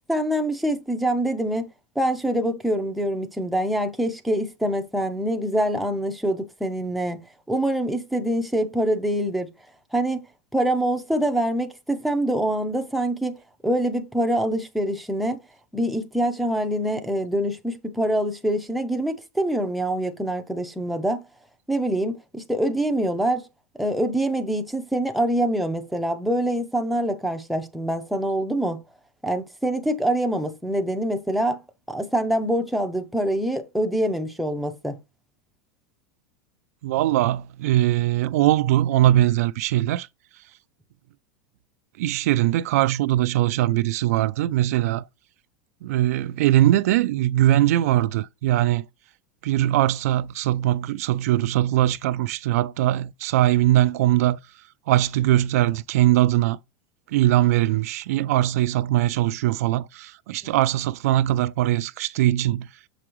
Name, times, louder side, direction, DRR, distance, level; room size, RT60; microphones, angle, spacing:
voice 1, 0.1-1.7 2.0-7.2 7.5-9.5 9.9-10.2 10.5-13.3 13.6-15.4 15.7-21.2 21.7-23.5 23.8-28.8 29.2-31.6 31.9-35.0 60.4-60.5, right 1 dB, ahead, 0.5 m, -25 dB
voice 2, 36.8-40.1 42.0-45.0 45.8-48.9 49.4-54.4 54.9-56.6 57.1-62.7, right 14 dB, 65° right, 0.4 m, -21 dB
6.9 x 4.9 x 3.0 m
supercardioid pair, 170°, 9 cm